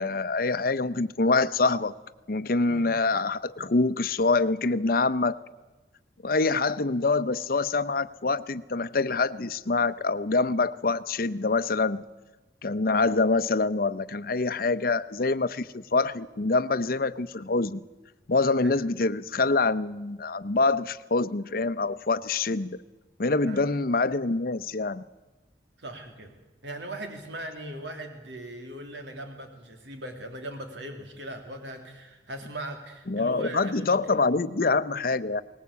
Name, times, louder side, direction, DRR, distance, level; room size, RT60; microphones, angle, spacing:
voice 1, 0.0-1.9 2.3-5.4 6.2-12.0 12.6-17.8 18.3-22.8 23.2-25.0 33.1-35.4, left 3 dB, 55° left, 15 dB, 0.7 m, -25 dB
voice 2, 25.8-26.3 26.6-34.2, right 1 dB, 85° right, 5 dB, 2.8 m, -39 dB
21.5 x 19.5 x 8.3 m, 1.2 s
head